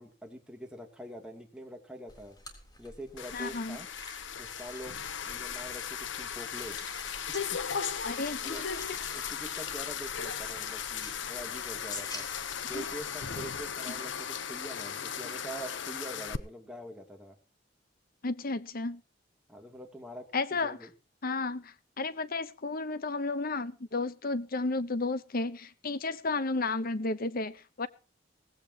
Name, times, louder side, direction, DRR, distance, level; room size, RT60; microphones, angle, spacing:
voice 1, 0.0-2.4 2.8-3.9 4.4-6.8 7.5-7.6 8.4-8.6 9.1-12.3 12.7-17.4 19.5-20.9, right 1 dB, 5° right, 2.9 m, -45 dB
sound 1, 2.1-14.3, left 2 dB, 20° left, 3.7 m, -50 dB
sound 2, 3.2-16.4, left 7 dB, 75° left, 1.0 m, -37 dB
voice 2, 3.3-3.8 8.0-8.8 12.7-12.9 18.2-19.0 20.3-20.8 21.2-27.9, left 3 dB, 50° left, 1.0 m, -33 dB
19.0 x 16.0 x 3.0 m
head